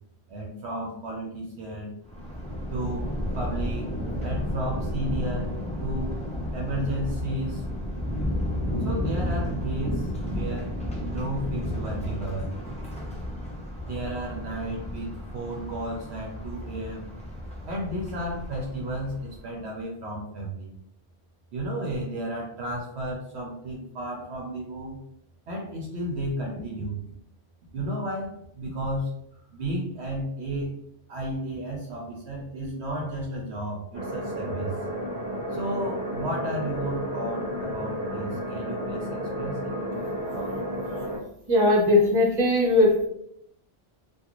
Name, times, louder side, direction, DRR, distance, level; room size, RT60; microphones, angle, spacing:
voice 1, 0.3-2.0 2.7-3.9 4.2-6.1 6.5-7.6 8.8-10.7 11.0-12.5 13.9-17.1 17.7-20.7 21.5-25.0 25.5-27.0 27.7-29.1 29.5-30.8 31.1-34.7 35.5-40.0 40.3-40.6, right 1 dB, 70° right, -1 dB, 0.8 m, -33 dB
Thunder, 2.1-19.4, equal, 10° left, 0.4 m, -32 dB
sound 1, 33.9-41.2, equal, 10° right, 1.3 m, -32 dB
voice 2, 41.5-43.1, left 2 dB, 30° right, -3 dB, 0.8 m, -19 dB
2.4 x 2.3 x 2.9 m, 0.72 s
omnidirectional pair, 1.2 m